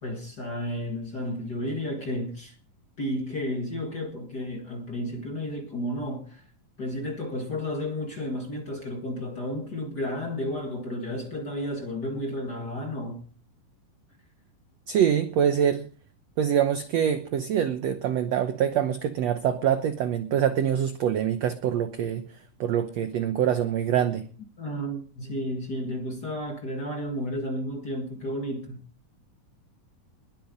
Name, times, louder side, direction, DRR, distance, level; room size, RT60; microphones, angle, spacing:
voice 1, 0.0-2.5 3.0-6.4 6.8-13.2 24.6-28.8, left 1 dB, 35° left, 1.8 m, -32 dB
voice 2, 14.9-15.9 16.4-22.2 22.6-24.2, right 9 dB, 75° right, 1.6 m, -25 dB
21.0 x 7.8 x 5.3 m
omnidirectional pair, 4.1 m